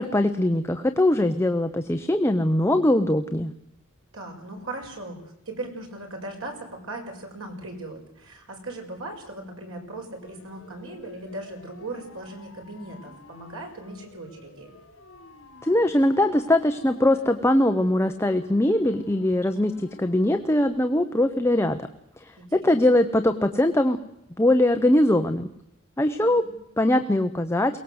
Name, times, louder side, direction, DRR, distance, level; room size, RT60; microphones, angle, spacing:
voice 1, 0.0-3.5 15.6-21.9 22.2-24.0 24.4-25.5 26.0-26.4 26.8-27.8, left 1 dB, 10° left, 7 dB, 0.8 m, -21 dB
voice 2, 4.1-14.7 22.4-22.8 26.2-26.6, right 2 dB, 85° right, 1 dB, 6.0 m, -38 dB
Siren, 10.2-20.6, left 2 dB, 70° left, 4.2 m, -50 dB
22.5 x 18.5 x 7.9 m, 0.82 s
head